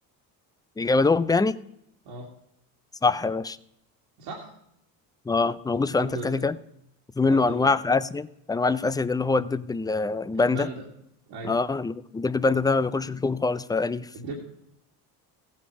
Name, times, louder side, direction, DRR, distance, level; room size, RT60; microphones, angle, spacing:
voice 1, 0.8-1.6 3.0-3.6 5.3-6.6 7.2-10.7 11.4-14.1, left 3 dB, 10° left, 15 dB, 0.4 m, -24 dB
voice 2, 4.2-4.5 6.0-6.4 7.3-7.7 10.3-10.9 11.3-11.5 14.1-14.4, right 2 dB, 70° right, -1 dB, 2.3 m, -36 dB
15.5 x 8.6 x 4.8 m, 0.77 s
supercardioid pair, 80°, 45 cm